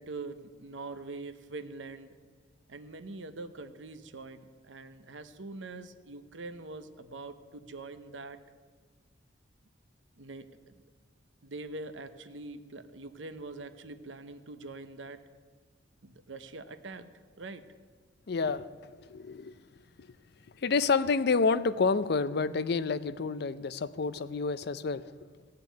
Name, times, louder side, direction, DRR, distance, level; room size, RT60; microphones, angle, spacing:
voice 1, 0.0-2.2 2.7-8.4 10.2-10.7 11.4-15.2 16.0-17.1 17.4-17.6, right 3 dB, 90° right, 10 dB, 0.9 m, -43 dB
voice 2, 18.3-19.6 20.6-25.1, left 4 dB, 60° left, 15 dB, 0.5 m, -29 dB
16.0 x 6.7 x 9.2 m, 1.5 s
head